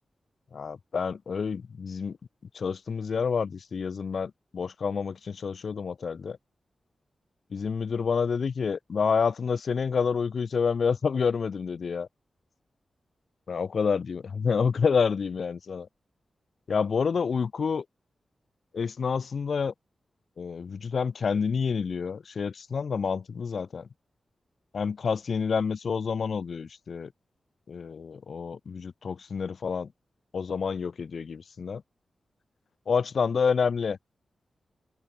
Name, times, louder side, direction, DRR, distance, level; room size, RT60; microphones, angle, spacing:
voice 1, 0.5-2.2 2.5-6.4 7.5-12.1 13.5-15.9 16.7-17.8 18.7-19.7 20.4-23.9 24.7-27.1 27.7-29.9 30.3-31.8 32.9-34.0, left 5 dB, 70° left, 6.3 m, -28 dB
open air
cardioid pair, 55°, 0 cm